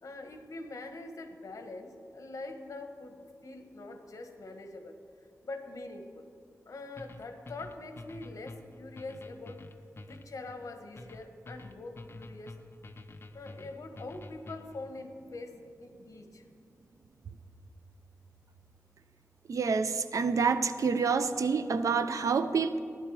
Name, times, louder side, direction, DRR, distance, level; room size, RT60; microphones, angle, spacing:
voice 1, 0.0-6.3 6.7-9.6 10.0-12.6 13.3-16.4, left 2 dB, 75° left, 6 dB, 1.2 m, -44 dB
sound 1, 7.0-14.9, left 2 dB, 45° left, 0.7 m, -48 dB
voice 2, 19.5-22.8, right 5 dB, 70° right, 11 dB, 0.6 m, -28 dB
15.5 x 11.0 x 4.7 m, 2.4 s
wide cardioid pair, 110°, 6 cm